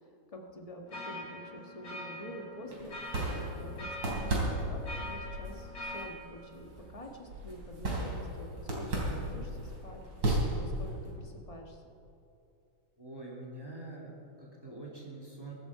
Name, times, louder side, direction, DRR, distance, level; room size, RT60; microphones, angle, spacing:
voice 1, 0.0-3.0 3.3-11.8, equal, 20° left, 2 dB, 1.2 m, -48 dB
sound 1, 0.9-6.1, left 1 dB, 45° left, 3.4 m, -43 dB
sound 2, 2.7-11.1, right 1 dB, 60° right, 3.9 m, -35 dB
voice 2, 13.0-15.5, right 2 dB, 10° right, -4 dB, 2.6 m, -45 dB
22.0 x 11.0 x 4.9 m, 2.7 s
omnidirectional pair, 2.2 m